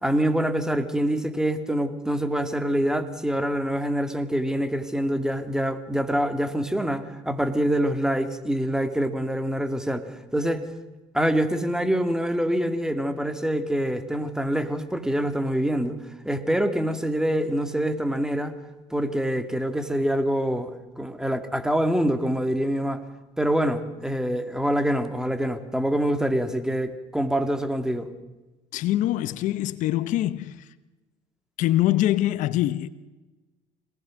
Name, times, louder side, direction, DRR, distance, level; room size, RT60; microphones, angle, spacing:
voice 1, 0.0-10.7 11.1-16.0 16.2-18.5 18.9-23.0 23.4-28.1, equal, 5° right, 2.4 m, -25 dB
voice 2, 28.7-30.7 31.6-32.9, left 14 dB, 70° left, 0.9 m, -24 dB
26.5 x 19.5 x 6.4 m
supercardioid pair, 80°, 14 cm